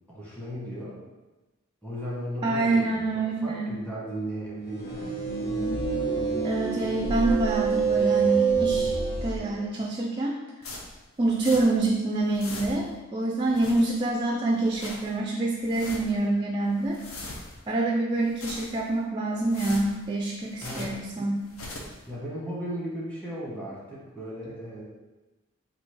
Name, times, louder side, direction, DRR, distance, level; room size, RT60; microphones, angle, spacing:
voice 1, 0.1-1.0 1.8-5.2 20.6-20.9 22.0-24.8, right 1 dB, 10° left, -7 dB, 1.3 m, -36 dB
voice 2, 2.4-3.8 6.4-8.9 9.2-10.4 11.2-17.0 17.7-21.5, right 2 dB, 20° right, 1 dB, 0.3 m, -26 dB
sound 1, 4.7-9.4, right 5 dB, 50° left, 1.2 m, -26 dB
sound 2, 10.6-11.9 12.2-13.0 13.4-14.2 14.5-15.2 15.6-16.2 16.6-17.7 18.1-19.0 19.4-21.1 21.4-22.0, left 2 dB, 70° left, 0.7 m, -42 dB
4.2 x 2.7 x 4.4 m, 1.1 s
head